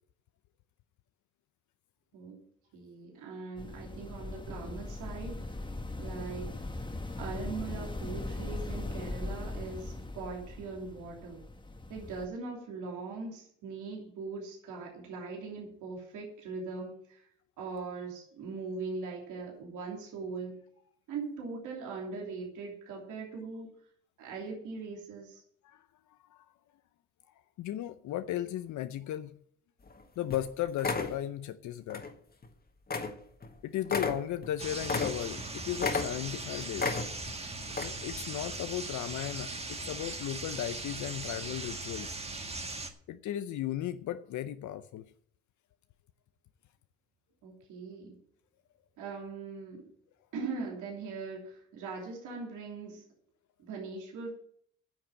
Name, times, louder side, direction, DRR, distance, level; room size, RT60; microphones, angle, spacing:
voice 1, 2.7-5.4 6.0-6.5 7.1-11.4 11.9-17.2 17.6-20.6 21.1-23.7 24.2-25.4 47.4-48.2 49.0-49.9 50.3-53.0 53.6-54.3, right 4 dB, 85° right, 3.1 m, -40 dB
sound 1, 3.6-12.3, left 2 dB, 15° left, 1.4 m, -39 dB
voice 2, 27.6-29.4 30.2-32.0 33.6-37.0 37.8-42.1 43.1-45.0, left 12 dB, 75° left, 0.6 m, -36 dB
sound 2, 29.9-30.0 30.3-30.5 30.8-31.2 31.9-32.1 32.4-32.5 32.9-33.2 33.4-33.5 33.8-35.5 35.8-36.4 36.8-37.3 37.7-37.8, left 4 dB, 30° left, 1.7 m, -33 dB
sound 3, 34.6-42.9, right 3 dB, 20° right, 1.6 m, -39 dB
9.7 x 7.2 x 8.8 m
cardioid pair, 90°, 30 cm